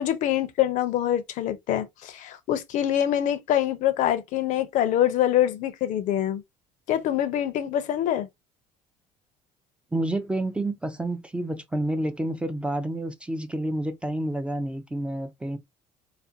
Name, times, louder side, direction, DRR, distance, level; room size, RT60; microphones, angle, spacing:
voice 1, 0.0-6.4 6.9-8.3, left 11 dB, 55° left, 0.5 m, -25 dB
voice 2, 9.9-15.6, right 1 dB, 5° right, 0.3 m, -29 dB
2.4 x 2.1 x 2.6 m
cardioid pair, 120°, 15 cm